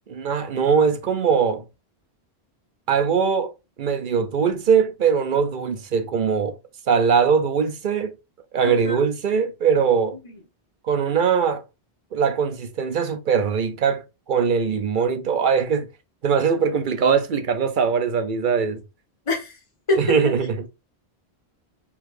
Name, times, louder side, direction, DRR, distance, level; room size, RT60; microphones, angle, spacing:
voice 1, 0.1-1.6 2.9-3.5 3.8-6.6 6.9-8.1 8.5-10.2 10.8-11.6 12.1-15.9 16.2-18.8 20.0-20.7, right 6 dB, 55° right, 0.7 m, -21 dB
voice 2, 8.6-9.0 19.3-19.5 19.9-20.0, left 2 dB, 30° left, 1.6 m, -24 dB
4.6 x 4.2 x 2.5 m
omnidirectional pair, 1.1 m